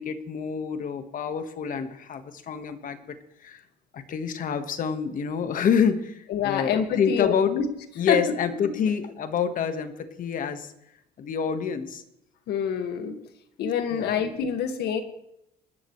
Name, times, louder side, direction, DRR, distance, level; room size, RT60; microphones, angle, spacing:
voice 1, 0.0-3.6 3.9-7.6 8.0-10.7 11.2-12.0 13.9-14.2, left 7 dB, 50° left, 9 dB, 1.6 m, -27 dB
voice 2, 6.3-7.7 8.1-8.2 12.5-13.2 13.6-15.0, left 7 dB, 75° left, 7 dB, 2.0 m, -26 dB
25.0 x 12.5 x 3.2 m, 0.78 s
cardioid pair, 110°, 17 cm